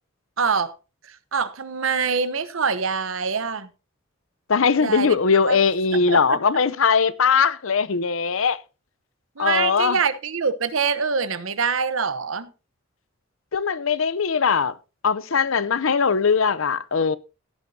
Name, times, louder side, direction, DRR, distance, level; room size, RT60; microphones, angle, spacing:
voice 1, 0.4-0.7 1.0-3.7 4.8-5.1 5.5-5.6 6.1-6.4 9.4-12.5, right 5 dB, 75° right, 1.0 m, -24 dB
voice 2, 4.5-8.6 9.4-10.0 13.5-14.7 15.0-17.2, left 5 dB, 75° left, 0.7 m, -20 dB
16.0 x 9.8 x 2.8 m
head